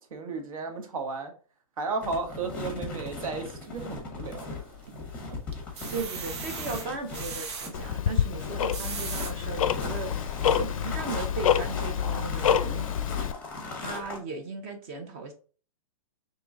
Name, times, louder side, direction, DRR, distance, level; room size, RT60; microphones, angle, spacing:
voice 1, 0.1-1.3 1.8-4.5, right 4 dB, 70° right, 5 dB, 1.2 m, -34 dB
sound 1, 2.0-14.2, left 3 dB, 10° left, 0.8 m, -39 dB
sound 2, 4.4-5.1 5.5-7.7 8.5-9.3 9.9-10.0 10.4-10.5, right 5 dB, 50° right, 0.8 m, -38 dB
voice 2, 5.9-10.1 10.6-12.9 13.8-15.3, right 3 dB, 25° right, 6 dB, 0.5 m, -37 dB
Tick-tock, 7.7-13.3, left 9 dB, 70° left, 0.4 m, -27 dB
3.7 x 3.0 x 3.7 m, 0.39 s
hypercardioid pair, 170°, 18 cm